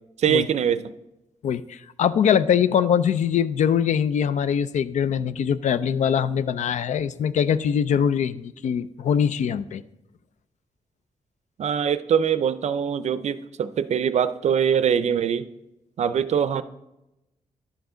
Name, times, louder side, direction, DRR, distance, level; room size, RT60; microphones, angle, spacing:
voice 1, 0.2-0.8 11.6-15.5 16.0-16.6, right 8 dB, 65° right, 14 dB, 0.4 m, -23 dB
voice 2, 1.4-9.8, left 8 dB, 80° left, 15 dB, 0.4 m, -22 dB
11.0 x 7.1 x 3.8 m, 0.92 s
wide cardioid pair, 110°, 12 cm